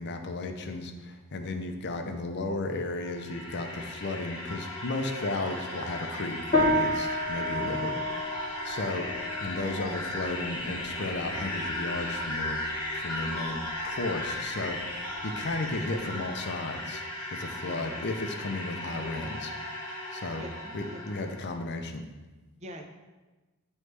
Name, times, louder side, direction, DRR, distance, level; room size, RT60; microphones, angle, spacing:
voice 1, 0.0-7.9 8.2-9.1 9.4-12.6 12.9-17.0 17.3-19.5 20.1-20.4 20.7-22.1, left 2 dB, 50° left, 6 dB, 0.5 m, -34 dB
sound 1, 2.8-21.5, left 1 dB, 75° left, 1.0 m, -36 dB
sound 2, 6.5-16.2, left 1 dB, 35° left, 1.1 m, -33 dB
voice 2, 7.6-8.0 17.6-17.9 20.4-21.0 22.6-22.8, equal, 30° right, 3 dB, 0.6 m, -42 dB
9.2 x 3.2 x 3.2 m, 1.2 s
head